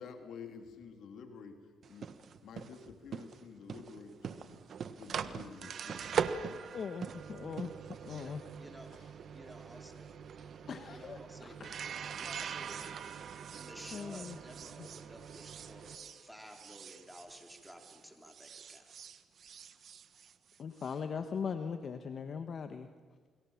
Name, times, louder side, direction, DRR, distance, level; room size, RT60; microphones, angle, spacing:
voice 1, 0.0-2.1 2.4-6.4, left 6 dB, 70° left, 5 dB, 3.2 m, -50 dB
sound 1, 1.8-18.0 18.3-20.9, right 7 dB, 55° right, 1.4 m, -42 dB
voice 2, 6.7-7.7 8.0-8.4 10.7-11.2 11.6-11.7 13.9-14.4 20.6-22.9, left 6 dB, 55° left, 8 dB, 1.5 m, -39 dB
voice 3, 8.1-8.9 9.3-10.0 10.9-18.9, equal, ahead, 3 dB, 4.2 m, -54 dB
29.0 x 22.5 x 7.4 m, 1.5 s
cardioid pair, 90°, 0 cm